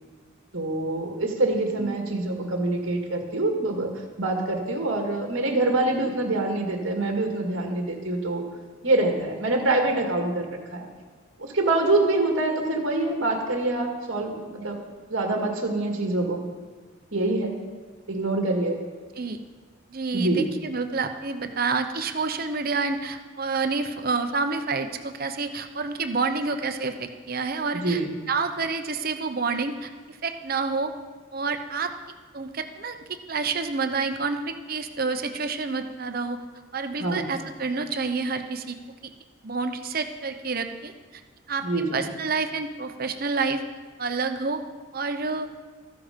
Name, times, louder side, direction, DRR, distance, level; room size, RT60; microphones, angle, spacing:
voice 1, 0.5-3.9 4.2-8.4 8.8-10.9 11.4-14.8 15.1-16.4 17.1-17.6 18.1-18.8 20.1-20.5 27.7-28.1 37.0-37.2 41.6-42.0, right 2 dB, 65° right, 1 dB, 1.9 m, -25 dB
voice 2, 19.9-28.0 28.3-30.9 31.3-31.9 32.3-33.0 33.3-36.4 36.7-39.0 39.4-40.9 41.5-41.7 41.9-43.6 44.0-44.6 44.9-45.5, right 4 dB, 45° right, 7 dB, 0.8 m, -28 dB
13.5 x 12.5 x 5.2 m, 1.4 s
head